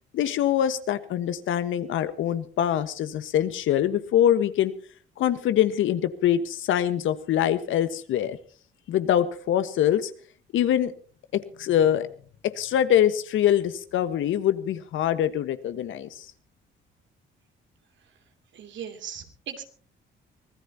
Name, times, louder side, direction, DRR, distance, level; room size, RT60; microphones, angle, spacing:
voice 1, 0.1-4.7 5.2-8.4 8.9-10.1 10.5-10.9 11.3-12.1 12.5-16.3, left 10 dB, 80° left, 12 dB, 1.4 m, -24 dB
voice 2, 18.5-19.6, right 8 dB, 70° right, 6 dB, 2.9 m, -38 dB
24.5 x 16.5 x 2.9 m, 0.42 s
cardioid pair, 90°, 20 cm